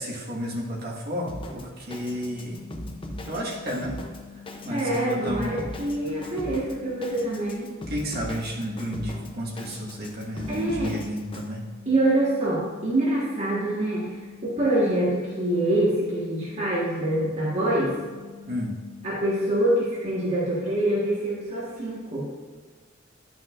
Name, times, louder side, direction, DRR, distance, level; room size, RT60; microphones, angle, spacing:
voice 1, 0.0-2.6 3.3-4.0 4.6-5.6 7.9-11.6 18.4-18.7, equal, 55° right, -3 dB, 1.6 m, -32 dB
Drum kit, 1.3-11.5, left 1 dB, 25° left, 0.7 m, -39 dB
sound 1, 2.1-19.6, left 7 dB, 85° left, 1.5 m, -46 dB
voice 2, 4.7-7.7 10.5-11.0 11.8-17.9 19.0-22.3, right 1 dB, 35° right, -7 dB, 1.6 m, -25 dB
11.0 x 5.9 x 2.5 m, 1.5 s
head